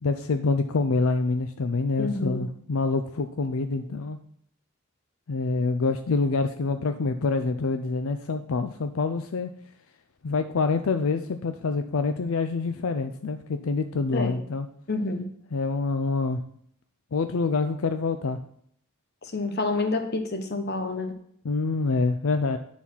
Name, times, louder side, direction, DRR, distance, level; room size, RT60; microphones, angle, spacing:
voice 1, 0.0-4.2 5.3-9.5 10.2-14.7 15.5-16.4 17.1-18.4 21.4-22.6, left 3 dB, 80° left, 8 dB, 0.5 m, -26 dB
voice 2, 2.0-2.4 14.1-14.4 14.9-15.2 19.2-21.1, left 3 dB, 50° left, 7 dB, 1.0 m, -28 dB
9.7 x 4.2 x 5.6 m, 0.66 s
head